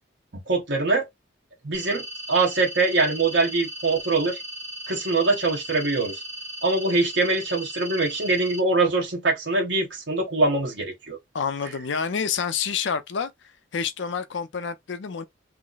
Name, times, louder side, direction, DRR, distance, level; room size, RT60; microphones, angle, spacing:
voice 1, 0.5-1.1 1.6-2.0 2.3-4.4 4.9-6.1 6.6-11.2, right 3 dB, 70° right, 1.1 m, -23 dB
sound 1, 1.7-8.6, equal, 40° right, 1.1 m, -37 dB
voice 2, 11.3-13.3 13.7-15.2, left 6 dB, 70° left, 0.5 m, -28 dB
3.1 x 2.0 x 3.9 m
head